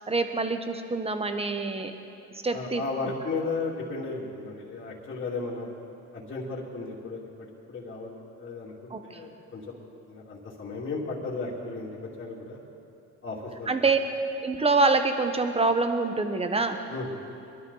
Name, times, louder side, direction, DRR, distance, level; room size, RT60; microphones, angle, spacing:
voice 1, 0.1-1.9 2.4-2.8 8.9-9.0 13.7-14.0 14.4-16.8, right 3 dB, 20° right, 7 dB, 1.1 m, -25 dB
voice 2, 2.5-5.7 6.1-9.7 10.1-11.9 12.2-12.6 13.2-13.9 16.9-17.2, left 3 dB, 40° left, -8 dB, 2.8 m, -35 dB
22.5 x 12.0 x 4.1 m, 2.8 s
cardioid pair, 90°, 30 cm